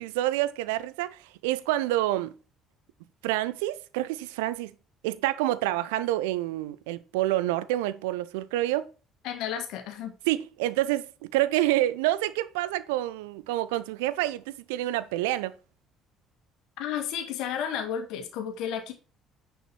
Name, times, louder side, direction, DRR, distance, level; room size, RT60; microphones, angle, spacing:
voice 1, 0.0-2.3 3.2-4.7 5.0-8.9 10.3-15.6, right 15 dB, 65° right, 0.6 m, -28 dB
voice 2, 9.2-10.1 16.8-18.9, left 8 dB, 60° left, 2.0 m, -32 dB
9.7 x 5.7 x 4.3 m
figure-of-eight pair, 50°, 0 cm